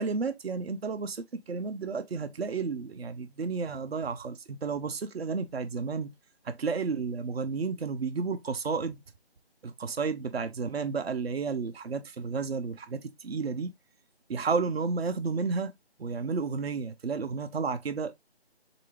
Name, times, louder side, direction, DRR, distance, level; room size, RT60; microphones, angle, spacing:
voice 1, 0.0-6.1 6.4-9.0 9.6-13.7 14.3-15.7 16.0-18.1, right 4 dB, 65° right, 0.6 m, -32 dB
3.8 x 2.6 x 3.2 m
figure-of-eight pair, 165°, 32 cm